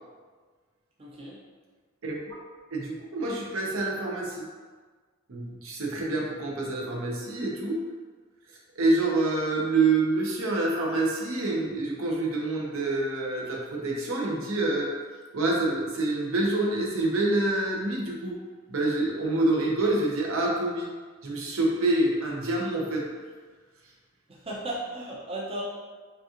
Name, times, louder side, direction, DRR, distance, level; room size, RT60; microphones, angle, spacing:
voice 1, 1.0-1.4 24.3-25.6, right 1 dB, 25° right, -5 dB, 0.6 m, -35 dB
voice 2, 2.0-2.4 2.7-4.5 5.3-7.8 8.8-14.9 15.3-18.4 18.7-20.9 21.2-23.1, right 2 dB, 70° right, -3 dB, 0.8 m, -27 dB
5.2 x 2.4 x 2.8 m, 1.5 s
head